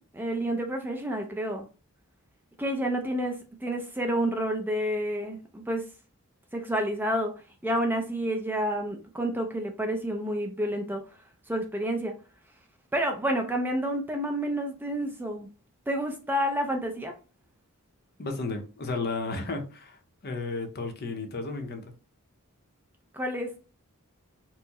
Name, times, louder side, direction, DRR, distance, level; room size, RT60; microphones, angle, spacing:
voice 1, 0.1-1.7 2.6-5.8 6.5-7.3 7.6-11.0 11.5-12.2 12.9-15.5 15.9-17.2 23.1-23.7, right 1 dB, 10° right, 0.4 m, -29 dB
voice 2, 18.2-21.9, left 3 dB, 45° left, 0.6 m, -33 dB
4.4 x 2.0 x 2.8 m
head